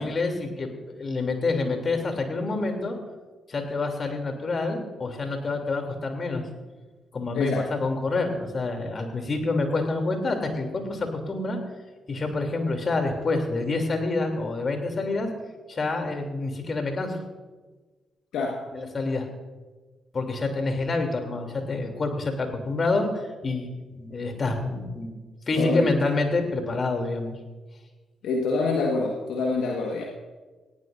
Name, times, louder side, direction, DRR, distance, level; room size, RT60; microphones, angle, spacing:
voice 1, 0.0-3.0 3.5-6.4 7.1-11.6 12.1-15.3 15.7-17.2 18.7-19.3 20.1-25.1 25.5-27.4, left 3 dB, 45° left, 4 dB, 3.1 m, -27 dB
voice 2, 7.3-7.7 18.3-18.6 25.6-25.9 28.2-30.0, left 3 dB, 70° left, 0 dB, 1.6 m, -26 dB
19.0 x 17.0 x 2.7 m, 1.3 s
hypercardioid pair, 40°, 0 cm